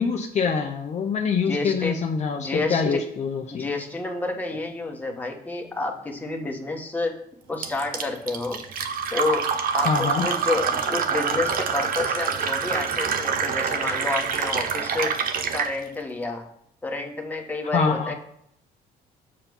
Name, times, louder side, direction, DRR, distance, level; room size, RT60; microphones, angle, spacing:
voice 1, 0.0-3.7 9.8-10.3 17.7-18.1, left 5 dB, 40° left, 3 dB, 0.9 m, -25 dB
voice 2, 1.5-2.0 2.4-3.0 3.5-7.2 7.5-8.6 9.1-9.5 9.7-15.2 15.5-16.5 16.8-18.2, left 3 dB, 10° left, 1 dB, 1.6 m, -29 dB
Fill (with liquid), 7.6-15.7, right 6 dB, 60° right, 1.0 m, -26 dB
7.5 x 4.4 x 7.0 m, 0.70 s
cardioid pair, 110°, 17 cm